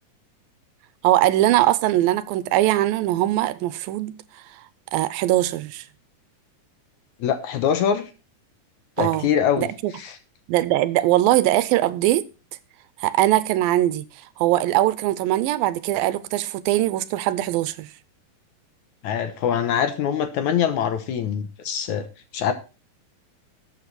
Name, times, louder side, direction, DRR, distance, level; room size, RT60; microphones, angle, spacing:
voice 1, 1.0-4.2 4.5-4.6 4.9-5.8 9.0-9.3 9.6-9.9 10.5-12.2 13.0-14.1 14.4-17.9, right 15 dB, 85° right, 2.5 m, -21 dB
voice 2, 7.2-8.1 9.0-9.7 10.0-10.2 19.0-22.1 22.3-22.5, left 8 dB, 65° left, 2.1 m, -23 dB
13.0 x 8.0 x 4.1 m
omnidirectional pair, 4.1 m